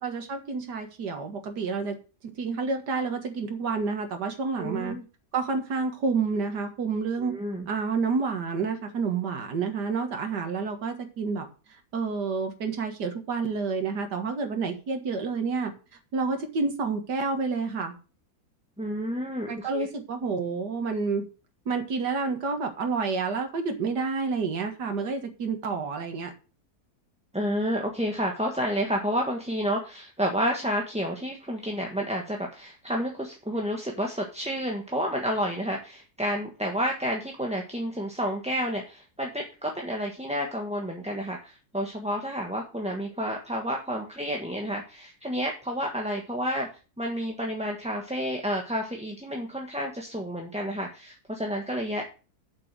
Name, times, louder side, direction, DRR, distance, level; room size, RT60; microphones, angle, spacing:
voice 1, 0.0-2.0 2.2-5.0 5.3-7.3 7.7-11.5 11.9-15.7 16.1-17.9 19.5-21.2 21.7-26.3, right 4 dB, 85° right, 5 dB, 2.2 m, -29 dB
voice 2, 4.6-5.0 7.2-7.7 18.8-19.9 27.3-46.7 47.0-52.2, equal, 5° right, 0 dB, 1.3 m, -30 dB
7.6 x 6.3 x 7.5 m, 0.34 s
omnidirectional pair, 1.7 m